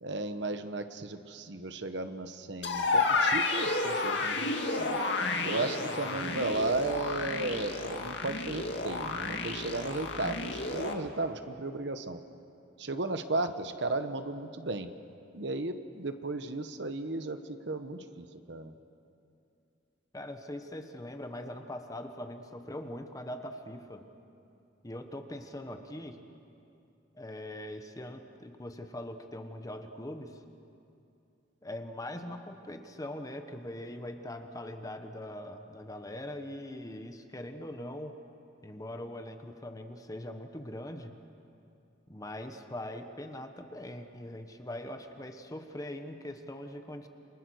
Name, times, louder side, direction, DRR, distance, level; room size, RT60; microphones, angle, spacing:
voice 1, 0.0-5.0 5.4-12.2 12.8-14.9 15.3-17.4 17.7-18.7, right 2 dB, 65° right, 9 dB, 1.2 m, -35 dB
sound 1, 2.6-10.9, left 3 dB, 65° left, 2.2 m, -31 dB
voice 2, 20.1-24.0 24.8-26.2 27.1-30.4 31.6-38.2 38.6-41.2 42.1-47.1, left 1 dB, 20° left, 6 dB, 1.4 m, -41 dB
29.0 x 25.0 x 6.5 m, 2.7 s
head